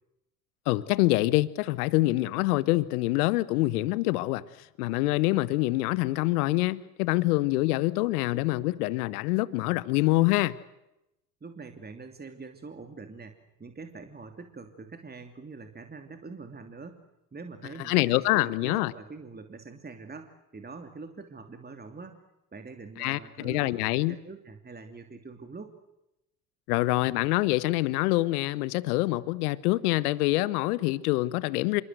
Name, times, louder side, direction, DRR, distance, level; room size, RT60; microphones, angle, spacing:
voice 1, 0.7-4.4 4.8-10.6 17.8-18.9 23.0-24.1 26.7-31.8, left 19 dB, 80° left, 1.2 m, -25 dB
voice 2, 11.4-17.0 17.3-22.2 22.5-25.8, right 4 dB, 20° right, 2.9 m, -44 dB
26.5 x 23.0 x 8.0 m
hypercardioid pair, 75°, 44 cm